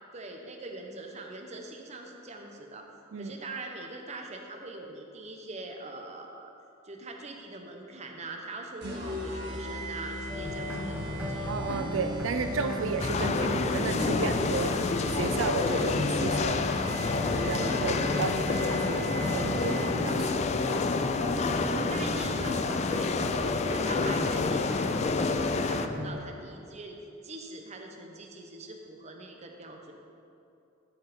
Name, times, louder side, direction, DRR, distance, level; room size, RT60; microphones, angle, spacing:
voice 1, 0.1-2.9 3.2-6.5 6.8-11.5 21.9-23.3 23.6-27.0 27.2-29.9, right 2 dB, 35° right, 2 dB, 0.9 m, -42 dB
sound 1, 8.8-20.2, equal, 60° right, 1.6 m, -39 dB
sound 2, 10.3-26.1, left 1 dB, 5° right, 1.0 m, -35 dB
voice 2, 11.5-16.6 17.3-20.4 21.7-21.9 23.9-24.0, right 5 dB, 85° right, 7 dB, 0.4 m, -33 dB
sound 3, 13.0-25.9, left 4 dB, 35° left, 0.3 m, -29 dB
11.5 x 4.8 x 5.1 m, 2.7 s
head